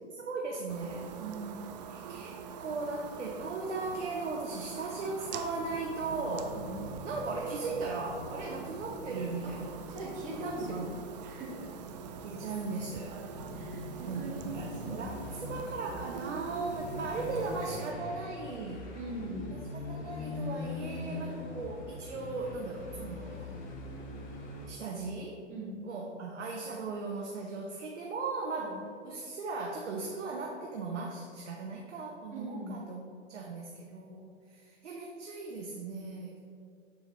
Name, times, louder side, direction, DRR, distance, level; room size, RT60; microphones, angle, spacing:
voice 1, 0.0-1.1 1.9-6.6 7.0-9.8 10.3-10.9 12.2-13.1 14.1-18.8 19.7-23.6 24.7-25.4 25.8-28.8 29.0-33.0 33.3-36.4, right 3 dB, 75° right, -1 dB, 0.9 m, -37 dB
sound 1, 0.7-17.9, right 6 dB, 35° right, 0.4 m, -44 dB
voice 2, 1.2-1.5 6.5-6.8 9.4-9.5 9.9-11.0 11.3-11.7 13.5-15.1 18.9-19.5 25.5-25.7 28.6-28.7 32.3-32.8, right 2 dB, 20° right, -4 dB, 1.5 m, -41 dB
sound 2, 5.6-24.7, left 3 dB, 25° left, 0.7 m, -43 dB
6.8 x 4.5 x 3.3 m, 2.4 s
figure-of-eight pair, 120°, 36 cm